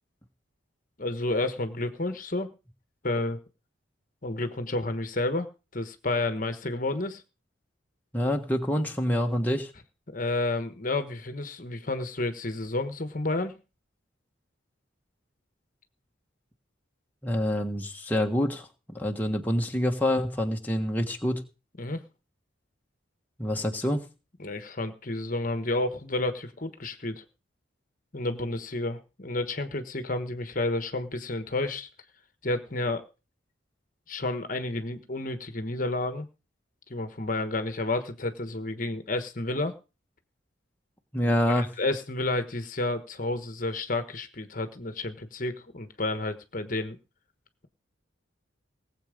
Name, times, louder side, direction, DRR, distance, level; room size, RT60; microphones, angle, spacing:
voice 1, 1.0-2.5 3.0-3.4 4.2-7.2 10.1-13.6 21.8-22.0 24.4-27.2 28.1-31.9 32.4-33.0 34.1-36.3 36.9-39.7 41.5-47.0, left 2 dB, 40° left, 9 dB, 1.2 m, -30 dB
voice 2, 8.1-9.7 17.2-21.4 23.4-24.0 41.1-41.7, equal, 10° left, 2 dB, 1.4 m, -27 dB
19.0 x 7.9 x 5.1 m, 0.32 s
head